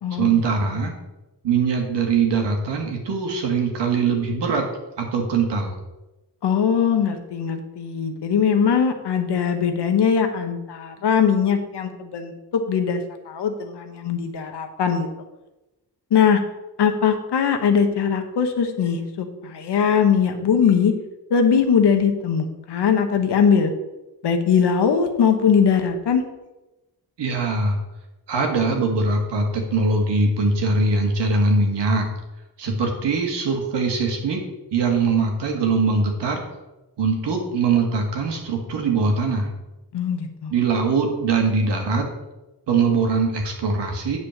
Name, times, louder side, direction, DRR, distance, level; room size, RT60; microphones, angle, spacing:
voice 1, 0.1-0.9 1.4-4.7 5.0-5.8 27.2-27.8 28.3-32.1 32.6-34.4 34.7-36.4 37.0-39.5 40.5-42.1 42.7-44.2, right 4 dB, 90° right, 2 dB, 1.9 m, -22 dB
voice 2, 6.4-15.1 16.1-16.4 16.8-20.9 21.3-23.7 24.2-26.2 39.9-40.5, left 7 dB, 75° left, 6 dB, 1.3 m, -20 dB
8.4 x 4.3 x 7.2 m, 1.0 s
cardioid pair, 95°, 41 cm